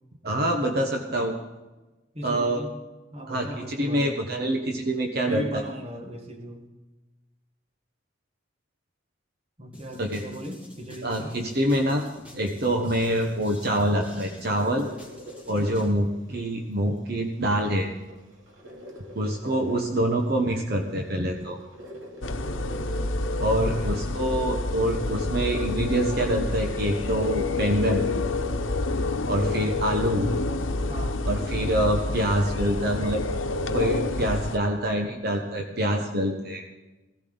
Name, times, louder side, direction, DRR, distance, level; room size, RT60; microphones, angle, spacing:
voice 1, 0.2-1.4 2.2-2.6 3.3-5.6 10.0-10.2 11.0-12.1 12.3-14.9 15.5-17.9 19.1-21.6 23.4-28.0 29.3-30.3 31.2-33.2 33.7-36.6, right 1 dB, 50° right, 3 dB, 1.2 m, -25 dB
voice 2, 2.1-2.7 3.1-4.6 5.3-6.7 9.6-11.3 23.4-24.0 30.9-31.2 32.7-33.0, equal, 30° right, 4 dB, 1.7 m, -38 dB
sound 1, 9.7-15.9, left 1 dB, 5° right, 2.1 m, -48 dB
sound 2, 14.5-30.8, equal, 80° right, 2.9 m, -46 dB
sound 3, 22.2-34.6, left 2 dB, 80° left, 1.0 m, -28 dB
17.0 x 15.5 x 4.0 m, 1.1 s
head